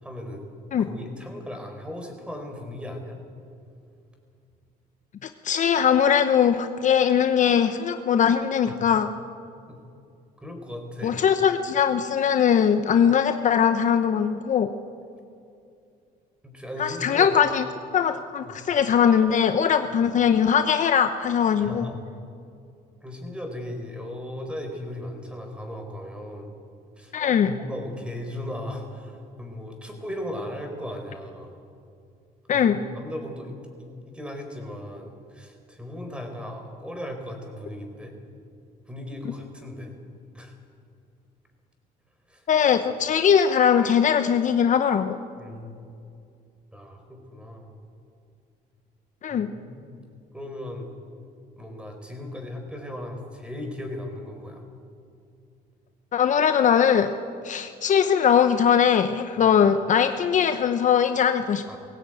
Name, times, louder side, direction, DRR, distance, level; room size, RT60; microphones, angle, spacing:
voice 1, 0.0-0.5 0.8-3.2 8.7-8.8 9.7-9.8 10.4-11.2 16.4-17.4 18.4-18.6 21.6-22.0 23.0-26.6 27.0-31.6 32.5-38.1 38.9-40.0 40.3-40.5 42.3-42.5 45.4-45.9 46.7-47.7 49.3-50.0 50.3-50.9 51.6-54.7 59.4-59.5 61.7-61.8, left 1 dB, 5° right, 4 dB, 4.3 m, -37 dB
voice 2, 5.2-9.1 11.0-14.7 16.8-17.6 17.9-21.9 27.1-27.5 32.5-32.8 42.5-45.2 49.2-49.5 56.1-57.1 57.4-61.6, left 8 dB, 45° left, 9 dB, 0.9 m, -21 dB
19.5 x 16.5 x 9.1 m, 2.4 s
cardioid pair, 110°, 17 cm